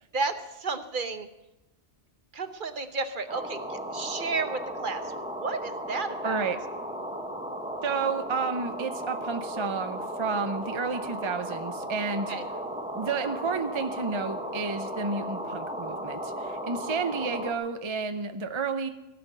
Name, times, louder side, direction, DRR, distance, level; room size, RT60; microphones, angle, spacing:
voice 1, 0.1-1.3 2.3-6.5 12.3-12.4, right 4 dB, 50° right, 9 dB, 1.0 m, -32 dB
sound 1, 3.3-17.5, equal, 5° right, 1.1 m, -35 dB
voice 2, 6.2-6.6 7.8-12.3 12.9-18.9, right 4 dB, 30° right, 8 dB, 0.6 m, -31 dB
16.5 x 6.0 x 9.2 m, 0.97 s
omnidirectional pair, 1.1 m